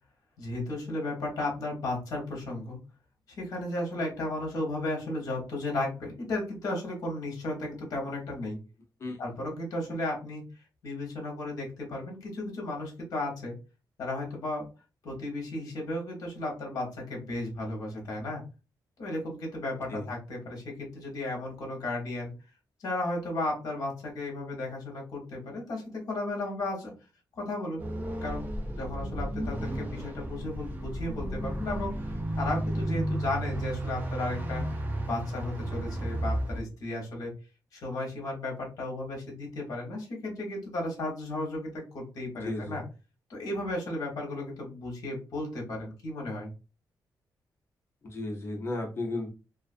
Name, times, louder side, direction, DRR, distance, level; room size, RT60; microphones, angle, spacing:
voice 1, 0.4-2.8 3.3-8.6 9.2-10.4 10.8-13.5 14.0-14.6 15.0-18.4 19.0-22.3 22.8-26.9 27.3-27.8 28.2-28.5 28.8-31.9 32.4-34.6 35.1-37.3 37.7-42.8 43.3-46.5, left 2 dB, 55° left, 0 dB, 0.9 m, -34 dB
sound 1, 27.8-36.6, right 1 dB, 25° right, 0.4 m, -33 dB
voice 2, 42.4-42.8 48.0-49.3, left 2 dB, 35° left, 0 dB, 0.6 m, -34 dB
2.4 x 2.4 x 2.4 m, 0.31 s
wide cardioid pair, 175°, 7 cm